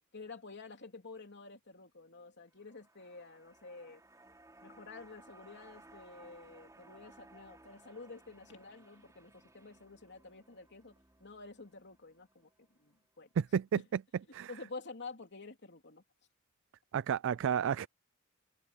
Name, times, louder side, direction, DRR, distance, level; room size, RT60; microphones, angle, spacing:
voice 1, 0.1-4.0 4.6-10.9 11.2-12.5 12.8-13.3 13.7-13.8 14.5-16.0, left 3 dB, 55° left, 3.4 m, -50 dB
sound 1, 2.5-12.9 13.2-13.3, right 2 dB, 15° right, 3.1 m, -60 dB
voice 2, 13.4-13.8 14.3-14.5 16.9-17.9, right 8 dB, 60° right, 0.3 m, -31 dB
head